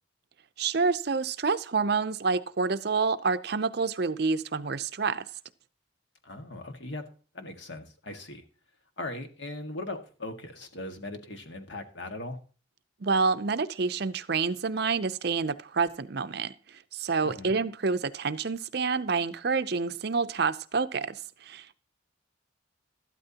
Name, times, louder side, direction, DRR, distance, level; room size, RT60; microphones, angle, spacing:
voice 1, 0.6-5.3 13.0-21.8, right 4 dB, 55° right, 0.6 m, -28 dB
voice 2, 6.2-7.1 7.3-8.4 9.0-12.4 17.2-17.5, left 2 dB, 65° left, 1.8 m, -39 dB
13.0 x 12.5 x 2.9 m
head